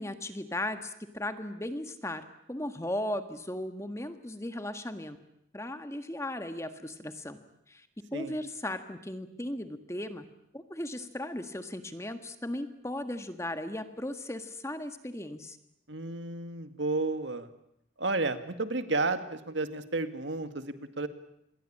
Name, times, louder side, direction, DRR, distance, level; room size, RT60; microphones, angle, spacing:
voice 1, 0.0-2.2 2.5-5.2 5.5-7.4 7.7-7.9 8.1-10.2 10.5-15.6, left 1 dB, 15° left, 8 dB, 1.6 m, -36 dB
voice 2, 15.9-17.5 18.0-21.1, right 3 dB, 75° right, 9 dB, 2.0 m, -32 dB
27.5 x 21.5 x 8.7 m, 0.76 s
head